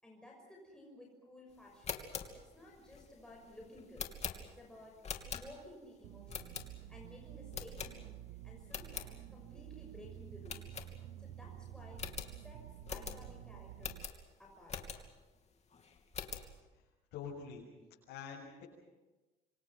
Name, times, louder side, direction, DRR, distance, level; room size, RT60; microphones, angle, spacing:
voice 1, 0.0-2.1 2.3-4.1 4.4-8.2 8.4-10.7 11.2-14.0 14.4-14.8, left 1 dB, 5° left, -2 dB, 6.5 m, -56 dB
sound 1, 1.7-5.8 6.3-7.0 7.5-8.3 8.6-9.1 9.5-9.6 9.9-10.0 10.4-11.4 11.6-11.7 11.9-15.3 15.7-16.5, left 6 dB, 40° left, 2.9 m, -44 dB
sound 2, 6.0-14.1, right 13 dB, 90° right, 0.7 m, -51 dB
voice 2, 17.1-17.7 18.1-18.6, left 6 dB, 90° left, -5 dB, 7.5 m, -45 dB
27.0 x 25.0 x 6.0 m, 1.1 s
cardioid pair, 110°, 17 cm